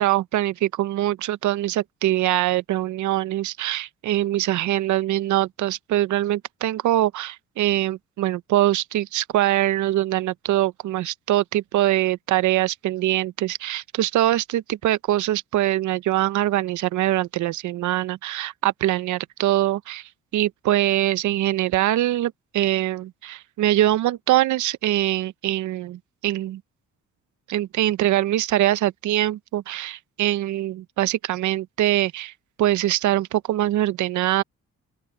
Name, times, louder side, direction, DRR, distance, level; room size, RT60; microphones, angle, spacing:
voice 1, 0.0-26.6 27.5-32.3 32.6-34.4, right 14 dB, 75° right, 0.7 m, -23 dB
open air
cardioid pair, 90°, 30 cm